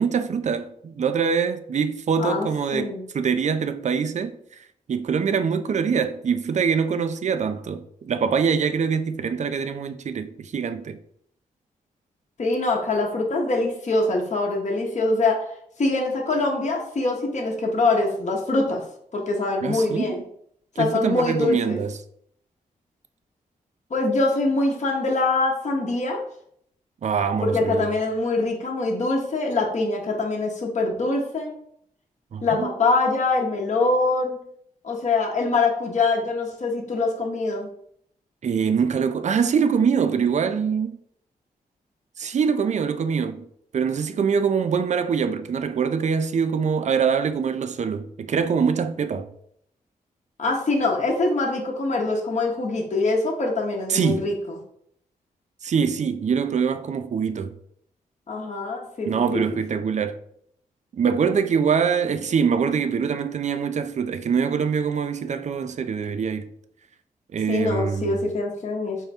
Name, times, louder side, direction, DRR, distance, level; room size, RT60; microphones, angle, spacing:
voice 1, 0.0-4.4 4.9-11.0 19.6-20.2 20.8-22.0 27.0-27.9 32.3-32.7 38.4-41.0 42.2-43.5 43.7-49.3 53.9-54.3 55.6-57.5 59.1-60.2 60.9-66.5 67.3-68.2, right 6 dB, 50° right, 0.4 m, -24 dB
voice 2, 2.2-3.0 12.4-15.4 15.8-18.8 19.1-20.2 20.8-21.8 23.9-26.2 27.4-31.5 32.4-34.4 34.8-37.7 50.4-54.3 58.3-59.4 67.5-69.0, left 3 dB, 50° left, 0.8 m, -24 dB
3.6 x 2.2 x 4.1 m
supercardioid pair, 45°, 16 cm